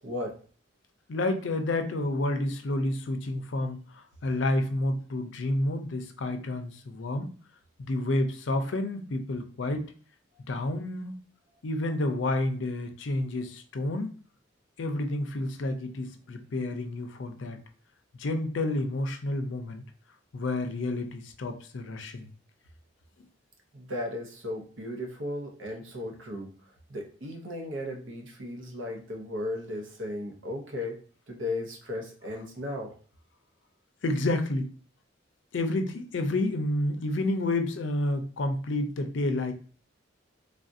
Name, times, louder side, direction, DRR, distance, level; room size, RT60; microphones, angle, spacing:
voice 1, 0.0-0.4 23.7-26.5 26.9-32.9, left 1 dB, 75° right, 2 dB, 0.8 m, -36 dB
voice 2, 1.1-7.3 7.8-9.9 10.5-11.2 11.6-14.1 14.8-17.6 18.2-19.8 20.3-22.3 34.0-34.7 35.5-39.5, left 2 dB, 70° left, 7 dB, 0.5 m, -30 dB
3.5 x 2.4 x 2.6 m, 0.42 s
head